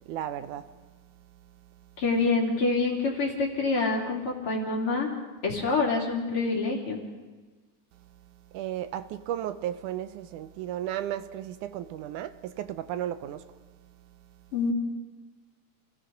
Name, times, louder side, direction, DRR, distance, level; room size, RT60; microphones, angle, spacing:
voice 1, 0.1-0.6 8.5-13.4, right 11 dB, 80° right, 2.2 m, -34 dB
voice 2, 2.0-5.1 5.4-7.0 14.5-14.7, left 3 dB, 45° left, 3.8 m, -26 dB
29.5 x 17.0 x 5.3 m
omnidirectional pair, 3.6 m